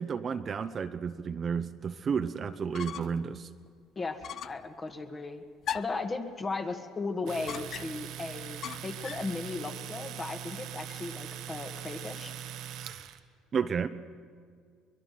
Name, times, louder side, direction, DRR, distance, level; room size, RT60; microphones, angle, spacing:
voice 1, 0.0-3.5 13.5-13.9, right 6 dB, 40° right, 10 dB, 0.8 m, -32 dB
sound 1, 2.5-3.3 3.6-3.7 4.2-4.7 5.6-6.1 7.5-8.1 8.6-9.3, left 9 dB, 55° left, 0.6 m, -39 dB
voice 2, 3.9-5.4 5.7-12.3, left 3 dB, 30° left, 6 dB, 1.9 m, -36 dB
Domestic sounds home sounds, 7.3-13.2, right 10 dB, 70° right, 1.2 m, -41 dB
23.0 x 21.5 x 6.0 m, 2.1 s
supercardioid pair, 85°, 0 cm